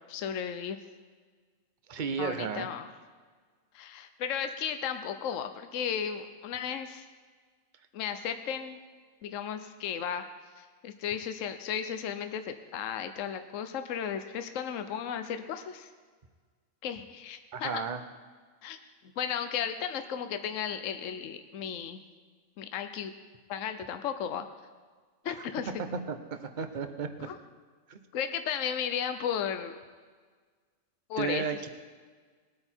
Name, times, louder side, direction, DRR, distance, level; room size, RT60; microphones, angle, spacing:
voice 1, 0.1-0.8 2.2-2.9 3.7-7.1 7.9-8.8 9.2-10.3 10.6-15.9 16.8-17.9 18.6-18.8 19.0-22.0 22.6-23.1 23.5-24.5 25.2-25.8 27.2-27.3 28.1-29.8 31.1-31.6, left 8 dB, 65° left, 8 dB, 1.1 m, -34 dB
voice 2, 1.9-2.7 17.5-18.0 25.2-25.3 26.1-27.3 27.9-28.0 31.2-31.7, right 6 dB, 40° right, 8 dB, 0.9 m, -33 dB
20.0 x 8.7 x 4.5 m, 1.5 s
omnidirectional pair, 1.5 m